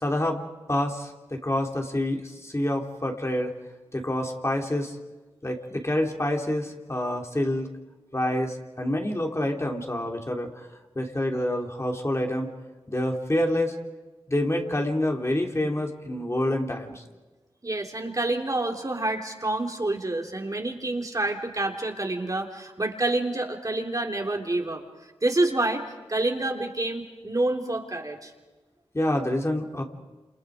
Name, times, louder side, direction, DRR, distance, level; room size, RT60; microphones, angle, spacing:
voice 1, 0.0-3.5 3.9-4.9 5.4-7.7 8.1-10.7 10.9-12.5 12.9-13.8 14.3-17.0 28.9-29.8, left 1 dB, 25° left, 1 dB, 3.1 m, -27 dB
voice 2, 17.6-24.8 25.2-25.8 26.1-28.3, right 2 dB, 35° right, 2 dB, 3.4 m, -28 dB
28.5 x 28.0 x 5.1 m, 1.2 s
cardioid pair, 45°, 10 cm